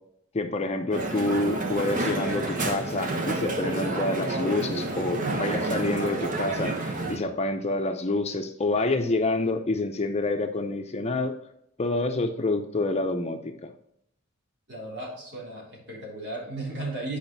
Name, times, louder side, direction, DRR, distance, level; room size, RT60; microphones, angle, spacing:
voice 1, 0.3-11.4 11.8-13.7, left 2 dB, 30° left, 6 dB, 0.6 m, -28 dB
Crowd, 0.9-7.2, right 2 dB, 40° right, 1.2 m, -29 dB
voice 2, 14.7-17.2, right 2 dB, 60° right, -2 dB, 3.3 m, -35 dB
9.0 x 5.0 x 4.0 m, 0.75 s
head